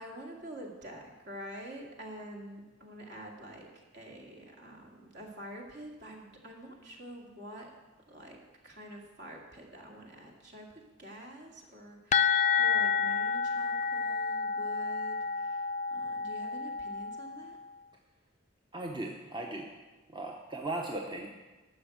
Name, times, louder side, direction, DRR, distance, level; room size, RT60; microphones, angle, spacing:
voice 1, 0.0-7.7 8.1-17.6, equal, 60° right, 0 dB, 2.2 m, -47 dB
sound 1, 12.1-17.7, left 6 dB, 40° left, 0.4 m, -30 dB
voice 2, 18.7-19.7 20.1-21.3, right 2 dB, 25° right, 1 dB, 0.8 m, -37 dB
12.0 x 6.3 x 7.9 m, 1.2 s
head